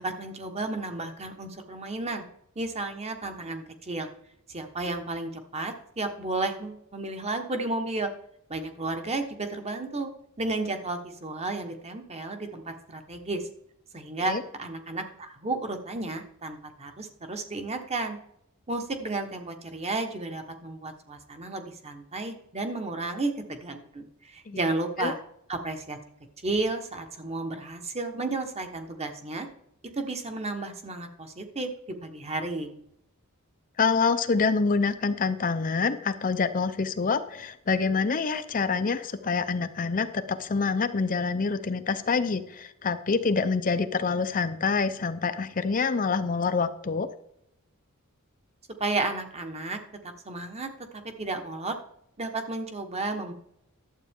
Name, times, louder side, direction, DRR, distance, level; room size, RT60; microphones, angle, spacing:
voice 1, 0.0-2.2 2.5-4.1 4.5-8.1 8.5-10.1 10.4-13.4 13.9-18.2 18.7-25.2 25.5-26.0 26.4-29.5 29.9-31.7 32.0-32.8 48.8-50.7 51.2-51.7 52.2-53.3, right 2 dB, 30° right, 6 dB, 1.2 m, -32 dB
voice 2, 33.8-47.1, left 4 dB, 40° left, 10 dB, 0.6 m, -26 dB
11.5 x 8.1 x 3.7 m, 0.73 s
head